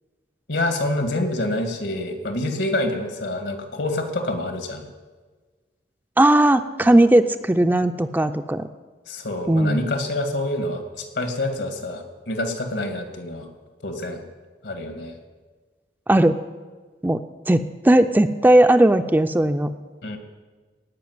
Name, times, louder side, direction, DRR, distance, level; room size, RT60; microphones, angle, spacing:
voice 1, 0.5-4.8 6.8-6.9 9.1-13.5 13.8-14.2 14.6-15.2 20.0-20.2, left 1 dB, 80° left, 6 dB, 2.0 m, -27 dB
voice 2, 6.2-8.7 9.5-9.8 16.1-16.4 17.0-19.7, right 1 dB, 10° right, 9 dB, 0.4 m, -17 dB
16.5 x 5.7 x 9.4 m, 1.4 s
head